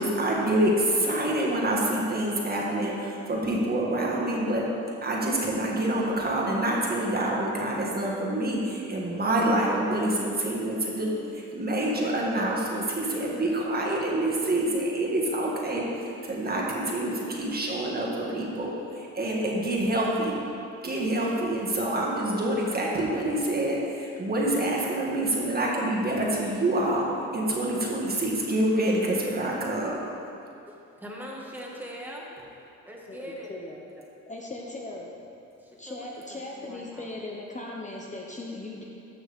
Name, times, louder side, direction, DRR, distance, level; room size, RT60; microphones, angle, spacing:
voice 1, 0.0-4.7 5.0-20.4 20.8-30.1, right 1 dB, 30° right, -3 dB, 1.8 m, -27 dB
voice 2, 30.7-32.3 32.9-33.5 35.7-37.1, equal, 5° right, -3 dB, 1.8 m, -42 dB
voice 3, 33.1-33.8 34.3-35.1 35.8-38.8, left 2 dB, 25° left, -2 dB, 0.9 m, -38 dB
13.5 x 6.2 x 3.6 m, 2.7 s
cardioid pair, 90°, 30 cm